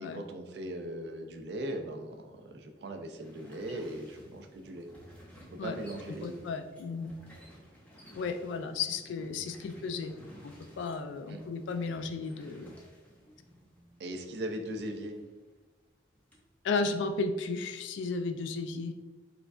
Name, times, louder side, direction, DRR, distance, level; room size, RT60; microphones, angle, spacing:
voice 1, 0.0-4.9 5.4-6.4 11.3-11.4 14.0-15.1, right 1 dB, 60° right, 5 dB, 0.4 m, -39 dB
sound 1, 3.2-16.5 16.8-18.1, equal, 10° left, 0.5 m, -54 dB
voice 2, 6.2-7.1 8.1-10.1 10.4-12.7 16.6-18.9, left 4 dB, 75° left, 8 dB, 0.3 m, -34 dB
4.9 x 2.3 x 2.3 m, 1.3 s
head